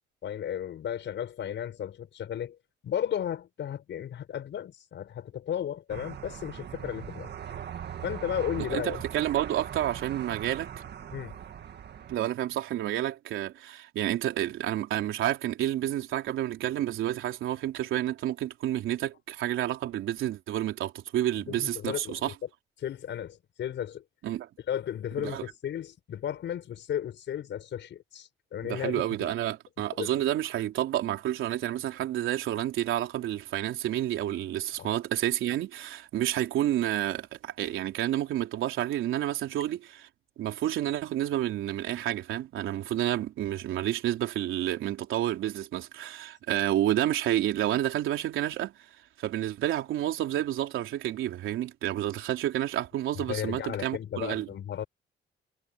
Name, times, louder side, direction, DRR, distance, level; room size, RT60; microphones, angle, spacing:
voice 1, 0.2-2.6 2.8-7.3 8.0-9.0 11.1-11.4 21.5-22.3 22.8-24.0 24.7-29.3 30.0-30.2 34.8-34.9 53.2-54.9, left 10 dB, 65° left, 5.7 m, -34 dB
Dutch highway near Utrecht, 5.9-12.2, right 9 dB, 55° right, 1.9 m, -40 dB
voice 2, 8.6-10.7 12.1-22.3 24.2-24.5 25.2-25.5 28.6-40.1 40.4-48.8 49.2-54.5, right 12 dB, 85° right, 3.7 m, -30 dB
cardioid pair, 90°, 20 cm